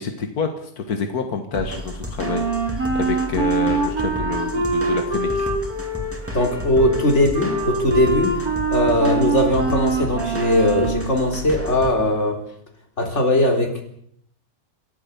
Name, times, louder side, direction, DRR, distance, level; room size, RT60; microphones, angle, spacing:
voice 1, 0.0-5.5, left 5 dB, 90° left, 6 dB, 2.1 m, -28 dB
sound 1, 1.5-11.9, left 1 dB, 10° right, 2.3 m, -32 dB
Wind instrument woodwind instrument, 2.2-11.1, right 3 dB, 75° right, 4.8 m, -24 dB
voice 2, 6.3-8.4 8.7-12.4 13.0-13.8, left 1 dB, 50° left, 2 dB, 4.1 m, -19 dB
27.0 x 14.0 x 7.0 m, 0.68 s
omnidirectional pair, 1.6 m